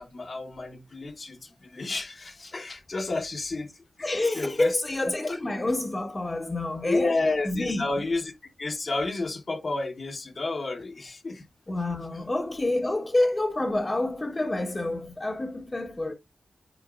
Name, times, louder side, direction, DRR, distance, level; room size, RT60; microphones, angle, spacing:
voice 1, 0.0-3.7 4.4-4.7 5.2-5.3 6.9-8.2 8.6-11.4, left 3 dB, 50° left, 1.3 m, -30 dB
voice 2, 4.0-7.2 7.4-7.9 11.7-16.1, left 2 dB, 30° left, 1.2 m, -28 dB
9.3 x 4.6 x 2.5 m
wide cardioid pair, 80°, 0 cm